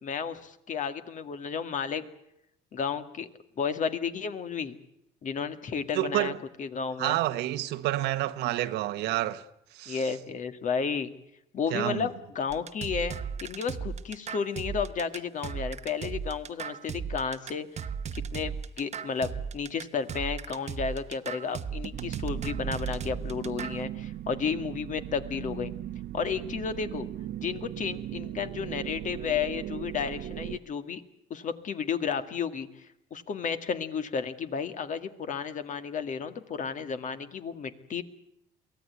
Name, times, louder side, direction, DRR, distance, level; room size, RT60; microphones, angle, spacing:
voice 1, 0.0-2.0 2.7-3.3 3.6-4.8 5.2-6.3 6.6-7.2 9.9-11.1 11.5-17.7 18.1-25.7 26.1-27.1 27.4-31.0 31.3-38.0, left 6 dB, 50° left, 2.0 m, -32 dB
voice 2, 5.9-6.4 7.0-9.5 9.7-10.0 11.7-12.1, right 15 dB, 85° right, 1.2 m, -29 dB
sound 1, 12.5-23.8, right 6 dB, 40° right, 1.0 m, -36 dB
sound 2, 21.9-30.6, right 12 dB, 70° right, 0.9 m, -38 dB
23.5 x 17.0 x 9.3 m
cardioid pair, 110°, 17 cm